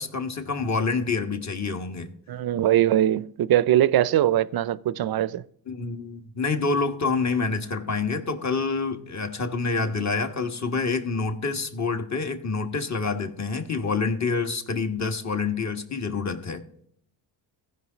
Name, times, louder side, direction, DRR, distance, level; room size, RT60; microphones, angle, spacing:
voice 1, 0.0-2.1 5.7-16.6, left 4 dB, 35° left, 1.5 m, -27 dB
voice 2, 2.3-5.4, right 12 dB, 50° right, 0.6 m, -21 dB
15.5 x 5.5 x 4.0 m
supercardioid pair, 55°, 49 cm